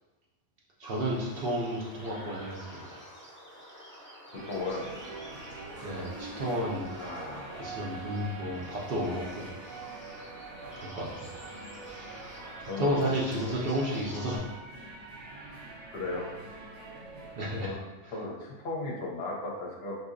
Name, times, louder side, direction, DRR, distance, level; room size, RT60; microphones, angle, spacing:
sound 1, 0.8-14.4, equal, 10° left, 0.6 m, -48 dB
voice 1, 0.8-2.8 5.8-6.9 7.6-9.5 10.8-11.3 12.6-14.4 17.4-17.7, equal, 60° right, -3 dB, 0.7 m, -32 dB
voice 2, 4.3-4.9 7.0-7.5 12.7-13.1 15.8-16.3 17.6-17.8 18.1-20.0, left 2 dB, 60° left, -2 dB, 0.8 m, -36 dB
sound 2, 4.3-17.6, right 3 dB, 85° right, 1.0 m, -44 dB
4.0 x 2.6 x 2.5 m, 1.2 s
omnidirectional pair, 1.3 m